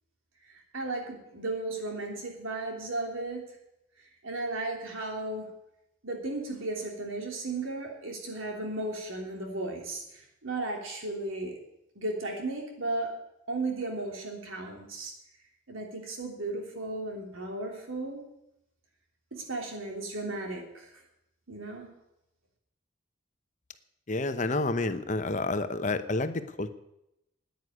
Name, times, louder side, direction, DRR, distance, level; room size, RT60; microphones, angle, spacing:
voice 1, 0.5-3.4 4.2-5.5 6.0-11.6 11.9-13.1 13.5-15.1 15.7-18.2 19.3-20.9 21.5-21.9, right 2 dB, 90° right, 1 dB, 3.2 m, -35 dB
voice 2, 24.1-26.7, left 2 dB, 40° left, 10 dB, 0.8 m, -29 dB
9.6 x 9.5 x 9.7 m, 0.84 s
head